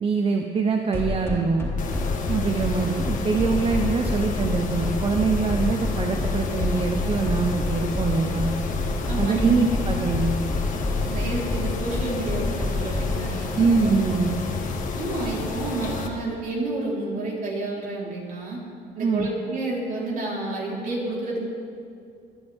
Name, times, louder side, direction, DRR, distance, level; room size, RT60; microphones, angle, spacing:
voice 1, 0.0-1.7 2.3-8.5 9.2-10.4 13.5-14.4 19.0-19.3, right 4 dB, 35° right, 3 dB, 0.9 m, -24 dB
sound 1, 0.9-13.2, left 2 dB, 15° left, 3.6 m, -27 dB
Mechanisms, 1.8-16.1, left 4 dB, 50° left, 1.8 m, -30 dB
voice 2, 9.1-9.5 11.1-13.7 14.9-18.6 18.9-21.4, right 2 dB, 55° right, -4 dB, 4.2 m, -30 dB
22.5 x 11.0 x 3.7 m, 2.4 s
cardioid pair, 110°, 17 cm